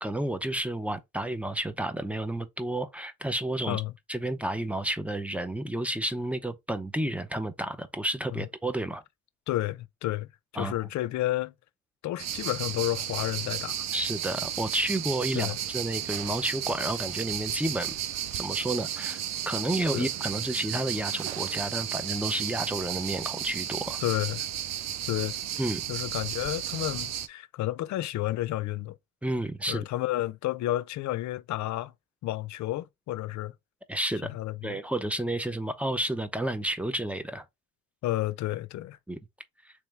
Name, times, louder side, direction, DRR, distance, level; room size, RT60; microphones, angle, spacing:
voice 1, 0.0-3.8 4.1-9.0 10.6-10.8 13.9-18.0 18.4-19.2 19.5-24.0 25.6-25.8 29.2-29.8 33.9-34.3 34.6-37.4 39.1-39.2, right 1 dB, 5° right, 0.6 m, -31 dB
voice 2, 9.5-10.3 10.5-11.5 12.0-13.9 15.3-15.6 19.9-20.1 24.0-24.5 25.1-25.4 25.9-29.0 29.7-31.9 32.2-33.5 34.2-34.8 38.0-39.0, left 15 dB, 70° left, 0.5 m, -31 dB
cicadas tunnel, 12.2-27.3, right 10 dB, 60° right, 0.5 m, -33 dB
3.4 x 3.0 x 3.3 m
cardioid pair, 90°, 30 cm